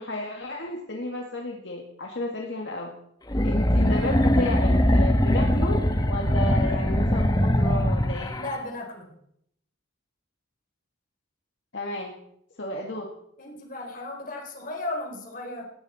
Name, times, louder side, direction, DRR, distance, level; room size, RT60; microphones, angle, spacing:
voice 1, 0.0-2.9 3.4-5.8 6.1-8.3 11.7-12.1 12.6-13.1, left 1 dB, 65° left, 0 dB, 2.2 m, -32 dB
sound 1, 3.3-8.5, equal, 20° left, 1.2 m, -22 dB
voice 2, 8.3-9.1 13.4-15.7, left 2 dB, 45° left, 2 dB, 4.1 m, -35 dB
19.0 x 15.0 x 4.4 m, 0.72 s
head